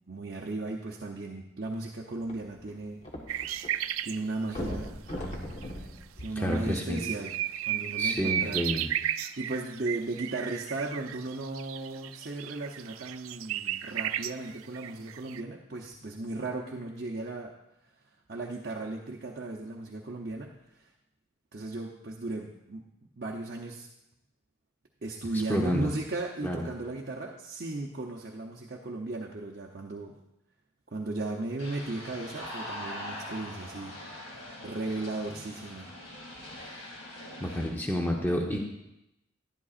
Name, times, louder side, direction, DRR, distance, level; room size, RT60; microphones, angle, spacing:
voice 1, 0.1-3.0 4.0-5.1 6.2-7.4 7.7-8.6 9.4-17.5 18.3-20.9 21.5-22.8 23.2-23.9 25.0-30.2 30.9-35.9 36.4-36.8, right 2 dB, 50° right, 0 dB, 0.7 m, -36 dB
sound 1, 2.2-3.7 4.0-4.1 4.5-7.1 7.8-7.9, left 1 dB, 35° left, 1.3 m, -39 dB
sound 2, 3.3-4.2 5.6-5.7 6.2-6.3 6.5-15.4, right 11 dB, 90° right, 0.3 m, -34 dB
voice 2, 6.4-7.0 8.0-8.9 25.5-25.9 26.4-26.7 37.4-38.6, equal, 10° left, 0 dB, 0.8 m, -29 dB
sound 3, 31.6-37.7, left 1 dB, 85° left, 2.6 m, -42 dB
11.5 x 10.5 x 2.5 m, 0.88 s
head